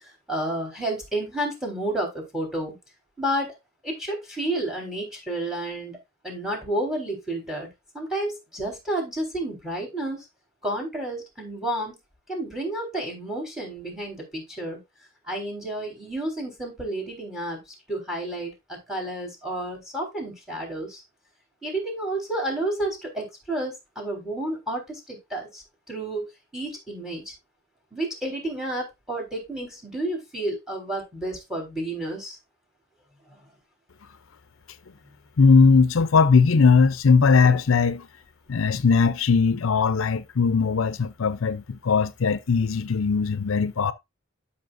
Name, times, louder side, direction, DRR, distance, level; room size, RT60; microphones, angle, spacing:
voice 1, 0.3-2.8 3.2-3.5 3.8-6.0 6.2-7.7 7.9-10.2 10.6-12.0 12.3-14.8 15.3-17.6 17.9-21.0 21.6-27.3 27.9-32.4, right 1 dB, 5° right, 4.0 m, -31 dB
voice 2, 35.4-38.1 38.5-43.9, left 5 dB, 75° left, 0.6 m, -19 dB
12.5 x 5.7 x 2.6 m
head